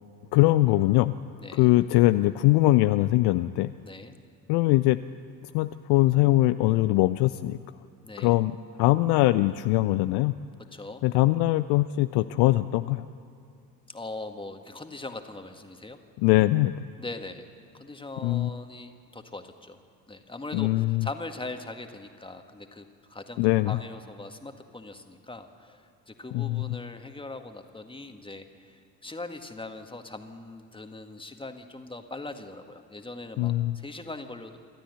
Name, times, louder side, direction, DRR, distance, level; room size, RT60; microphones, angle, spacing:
voice 1, 0.3-1.2 1.5-3.7 4.5-5.0 5.4-7.6 8.2-10.3 11.0-13.1 16.2-16.7 18.2-18.5 20.5-21.1 23.4-23.8 26.3-26.7 33.4-33.8, left 17 dB, 55° left, 12 dB, 0.6 m, -22 dB
voice 2, 3.8-4.2 8.0-8.4 10.7-11.0 13.9-16.0 17.0-17.5 17.7-19.8 20.1-34.6, left 2 dB, 10° left, 6 dB, 1.9 m, -41 dB
28.5 x 13.0 x 8.2 m, 2.5 s
figure-of-eight pair, 55°, 48 cm